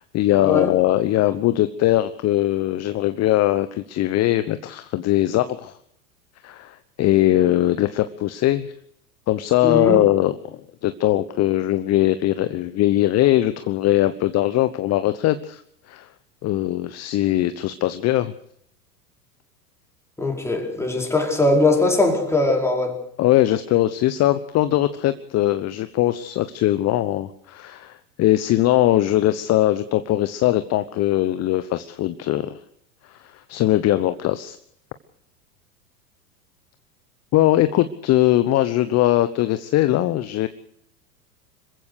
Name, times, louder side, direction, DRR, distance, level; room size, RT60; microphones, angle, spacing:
voice 1, 0.0-5.8 6.4-8.7 9.3-15.6 15.9-16.1 16.4-18.3 23.2-32.6 33.1-34.6 37.3-40.5, left 14 dB, 30° left, 12 dB, 1.1 m, -20 dB
voice 2, 9.6-10.0 20.2-23.0, left 2 dB, 5° left, 1 dB, 4.9 m, -20 dB
26.0 x 15.5 x 6.5 m, 0.70 s
figure-of-eight pair, 90°, 48 cm